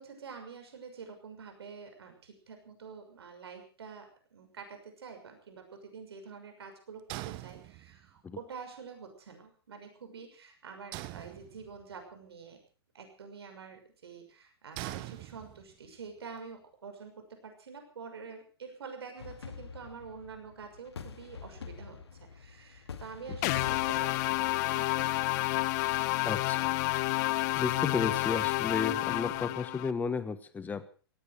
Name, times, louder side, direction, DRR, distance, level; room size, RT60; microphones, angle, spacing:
voice 1, 0.0-12.6 12.9-25.3, right 5 dB, 75° right, 6 dB, 6.3 m, -47 dB
sound 1, 7.1-8.2 10.9-11.9 14.8-15.9, right 19 dB, 35° right, 1.0 m, -42 dB
sound 2, 19.2-25.4, left 6 dB, 80° left, 2.2 m, -47 dB
sound 3, 23.4-29.9, left 20 dB, 40° left, 1.0 m, -30 dB
voice 2, 26.2-26.7 27.6-30.9, left 5 dB, 10° left, 13 dB, 1.2 m, -33 dB
17.5 x 16.5 x 5.0 m, 0.39 s
hypercardioid pair, 120°, 13 cm